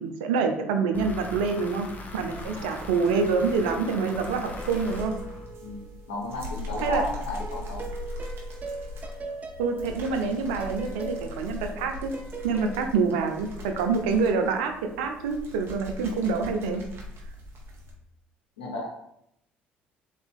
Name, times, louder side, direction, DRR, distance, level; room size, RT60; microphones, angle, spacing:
voice 1, 0.0-5.2 6.8-7.0 9.6-12.1 12.4-16.8, right 5 dB, 80° right, 5 dB, 0.6 m, -26 dB
sound 1, 0.9-5.9, left 2 dB, 35° left, 0.9 m, -41 dB
sound 2, 1.7-17.9, left 2 dB, 50° right, 1.3 m, -40 dB
sound 3, 3.6-6.5 7.4-12.8, right 4 dB, 30° right, 0.6 m, -40 dB
voice 2, 6.1-7.9 12.6-12.7 18.6-18.9, left 2 dB, 85° left, -4 dB, 0.9 m, -33 dB
4.1 x 3.3 x 3.6 m, 0.75 s
hypercardioid pair, 65°, 5 cm